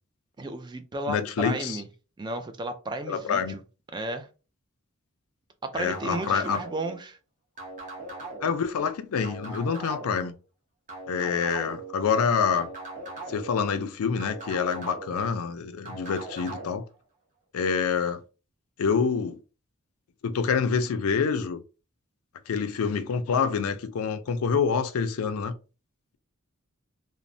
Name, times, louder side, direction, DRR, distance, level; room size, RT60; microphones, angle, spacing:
voice 1, 0.4-1.9 2.2-3.6 3.9-4.3 5.6-7.2, right 2 dB, 20° right, 0.3 m, -33 dB
voice 2, 1.1-1.8 3.1-3.6 5.7-6.6 8.4-10.3 11.1-12.7 13.3-16.9 17.5-18.2 18.8-19.4 20.2-21.6 22.5-25.6, left 6 dB, 80° left, 0.4 m, -26 dB
sound 1, 5.9-7.0 7.6-8.6 9.2-10.3 10.9-11.9 12.5-13.6 14.2-15.2 15.8-16.7, right 3 dB, 35° right, 0.9 m, -39 dB
3.0 x 2.0 x 2.5 m
head